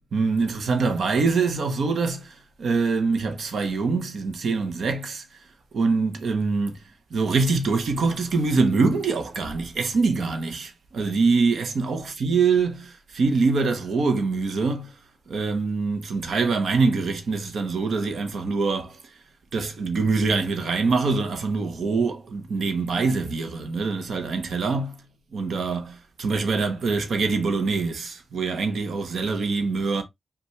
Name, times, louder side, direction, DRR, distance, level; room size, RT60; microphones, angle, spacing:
voice 1, 0.1-5.2 5.7-6.7 7.1-14.9 15.3-19.1 19.5-25.0 25.3-30.0, right 4 dB, 65° right, 0.9 m, -24 dB
5.5 x 2.5 x 3.1 m
wide cardioid pair, 170°, 0 cm